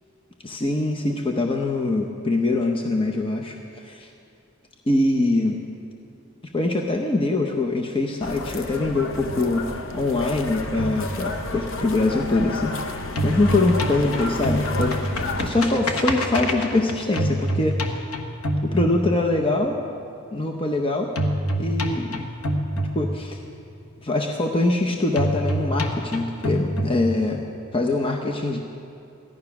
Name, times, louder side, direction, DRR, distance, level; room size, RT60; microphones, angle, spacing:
voice 1, 0.4-4.1 4.9-5.6 6.5-17.9 18.6-19.8 20.3-21.1 21.6-22.3 22.9-23.4 24.0-27.4 27.7-28.6, left 2 dB, 25° left, 2 dB, 0.7 m, -23 dB
sound 1, 8.2-15.5, left 2 dB, 60° left, 0.8 m, -31 dB
sound 2, 10.7-12.7 13.0-19.5 21.2-23.5 25.2-27.5, equal, 80° left, 1.2 m, -26 dB
14.5 x 12.0 x 5.9 m, 2.5 s
head